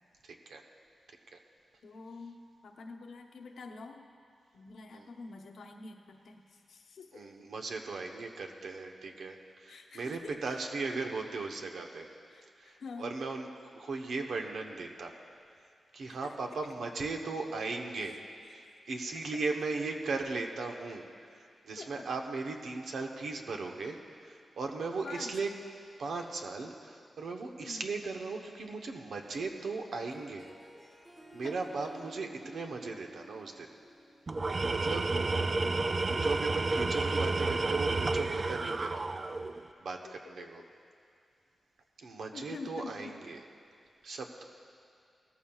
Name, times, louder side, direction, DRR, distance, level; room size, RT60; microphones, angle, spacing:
voice 1, 0.2-0.6 1.3-1.4 4.9-5.0 7.1-12.1 12.6-13.5 13.7-15.1 15.9-18.2 18.5-21.0 21.3-25.5 26.0-30.5 31.3-33.7 34.7-35.0 36.0-39.0 39.8-40.6 42.0-43.4 44.0-44.4, right 3 dB, 80° right, 3 dB, 1.0 m, -37 dB
voice 2, 1.8-4.0 4.5-7.3 9.7-10.6 10.9-11.0 12.3-13.1 16.1-16.3 18.0-18.8 21.8-22.1 25.0-25.3 27.6-27.9 31.4-31.6 38.6-38.7 40.0-40.7 42.3-43.1, left 4 dB, 80° left, 2 dB, 1.0 m, -47 dB
Harp, 29.2-34.7, right 1 dB, 15° right, 1.2 m, -53 dB
Tools, 34.3-39.6, right 3 dB, 35° right, 0.4 m, -30 dB
17.5 x 14.5 x 2.4 m, 2.4 s
wide cardioid pair, 105°, 0 cm